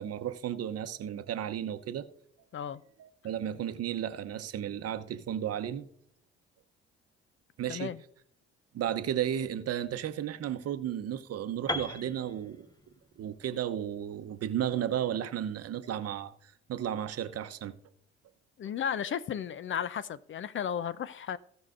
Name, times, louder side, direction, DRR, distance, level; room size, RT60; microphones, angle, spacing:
voice 1, 0.0-2.0 3.0-5.9 7.6-7.9 8.7-12.7 13.2-17.8, right 10 dB, 50° right, 0.9 m, -34 dB
voice 2, 7.7-8.0 18.6-21.4, left 8 dB, 40° left, 0.5 m, -34 dB
Piano, 11.7-15.6, left 2 dB, 10° left, 0.8 m, -40 dB
17.5 x 6.1 x 2.6 m
hypercardioid pair, 50°, 32 cm